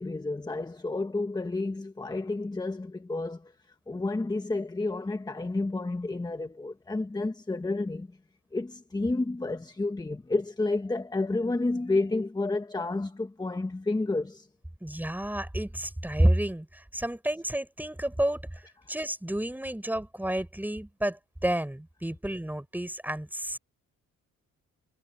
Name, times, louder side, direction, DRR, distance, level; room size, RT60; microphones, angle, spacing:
voice 1, 0.0-3.5 3.9-8.2 8.5-14.5, left 2 dB, 15° left, 1.2 m, -30 dB
voice 2, 14.8-18.6 18.9-23.6, right 1 dB, 5° right, 4.6 m, -30 dB
cardioid pair, 90°, 30 cm